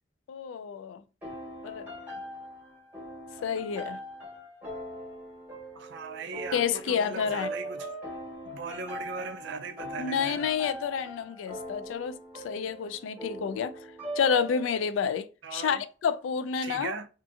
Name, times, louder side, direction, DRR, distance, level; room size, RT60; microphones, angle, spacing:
voice 1, 0.3-1.0 1.6-1.9 3.4-4.0 6.5-7.5 10.0-13.9 14.2-17.0, left 7 dB, 85° left, 0.3 m, -29 dB
sound 1, 1.2-14.9, equal, 10° right, 0.9 m, -41 dB
voice 2, 5.8-7.9 8.5-10.5 15.4-15.8 16.6-17.1, right 4 dB, 65° right, 0.4 m, -38 dB
2.6 x 2.5 x 2.4 m
head